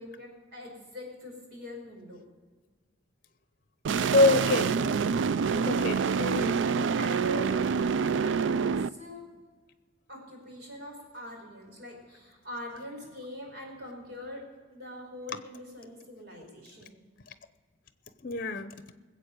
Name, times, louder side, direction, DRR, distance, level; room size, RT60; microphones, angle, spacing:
voice 1, 0.0-2.2 7.0-7.6 8.1-9.3 10.1-14.4 14.7-16.9, left 1 dB, 55° right, 5.2 m, -42 dB
sound 1, 3.8-8.9, right 5 dB, 80° right, 0.4 m, -27 dB
voice 2, 4.1-4.8 5.7-6.6 18.2-18.8, left 2 dB, 45° left, 0.8 m, -25 dB
20.5 x 8.1 x 6.6 m
head